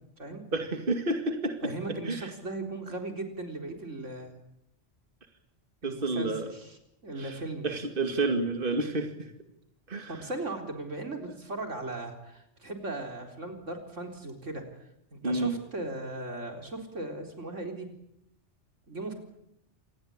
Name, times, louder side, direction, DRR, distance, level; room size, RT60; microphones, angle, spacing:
voice 1, 0.5-2.3 5.8-6.5 7.2-7.4 7.6-9.3 9.9-10.2 15.2-15.5, right 2 dB, 45° right, 5 dB, 2.4 m, -30 dB
voice 2, 1.6-4.3 5.8-7.7 10.1-14.6 15.1-17.9 18.9-19.1, right 2 dB, 90° right, 4 dB, 4.5 m, -37 dB
27.5 x 20.0 x 8.7 m, 0.78 s
omnidirectional pair, 1.2 m